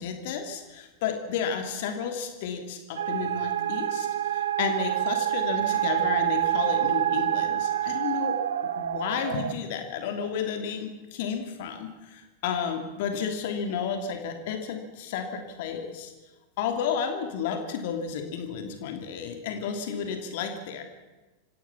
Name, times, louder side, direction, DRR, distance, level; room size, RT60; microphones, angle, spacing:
voice 1, 0.0-8.4 8.7-16.1 16.6-20.8, left 7 dB, 50° left, 6 dB, 3.0 m, -32 dB
sound 1, 3.0-9.5, right 12 dB, 65° right, 1.0 m, -27 dB
26.5 x 16.5 x 7.2 m, 1.2 s
figure-of-eight pair, 90°, 0 cm